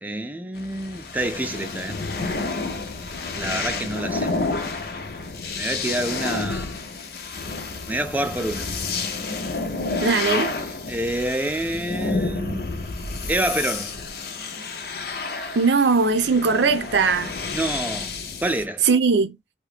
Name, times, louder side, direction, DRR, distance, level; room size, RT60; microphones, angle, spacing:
voice 1, 0.0-2.0 3.3-4.3 5.5-6.7 7.9-8.7 10.2-12.7 13.3-14.0 17.5-18.1 18.4-18.9, right 1 dB, 10° right, 0.4 m, -27 dB
sound 1, 0.5-18.6, left 3 dB, 55° left, 0.6 m, -30 dB
voice 2, 10.0-10.5 15.5-17.3 18.8-19.3, right 4 dB, 85° right, 0.6 m, -19 dB
2.8 x 2.3 x 3.3 m
head